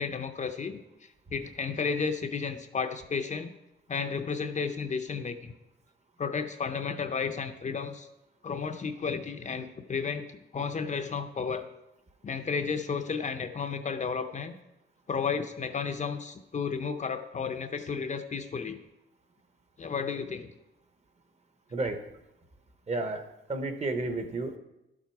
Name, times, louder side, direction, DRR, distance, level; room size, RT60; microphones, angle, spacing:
voice 1, 0.0-3.5 3.9-5.5 6.2-8.1 8.4-10.2 10.5-11.7 12.2-14.5 15.1-18.8 19.8-20.5, left 5 dB, 35° left, 7 dB, 0.6 m, -33 dB
voice 2, 21.7-22.0 22.9-23.2 23.5-24.6, right 2 dB, 30° right, 7 dB, 1.0 m, -31 dB
11.5 x 7.4 x 4.6 m, 0.93 s
wide cardioid pair, 150°, 21 cm